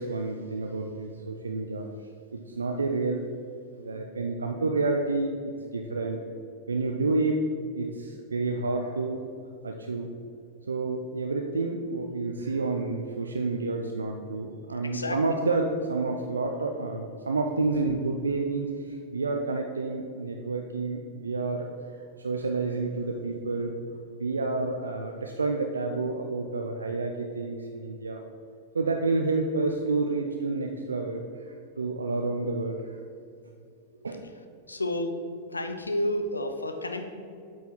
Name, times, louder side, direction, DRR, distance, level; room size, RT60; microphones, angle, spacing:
voice 1, 0.0-1.9 2.3-3.2 3.8-6.2 6.7-7.4 7.7-9.2 9.6-10.1 10.7-21.7 22.2-23.7 24.2-28.2 28.7-33.0 34.0-34.2, right 3 dB, 85° right, 3 dB, 0.4 m, -29 dB
voice 2, 14.8-15.2 34.7-35.2 35.5-37.1, left 1 dB, 90° left, 7 dB, 0.6 m, -30 dB
8.3 x 4.6 x 4.4 m, 2.4 s
figure-of-eight pair, 95°, 0 cm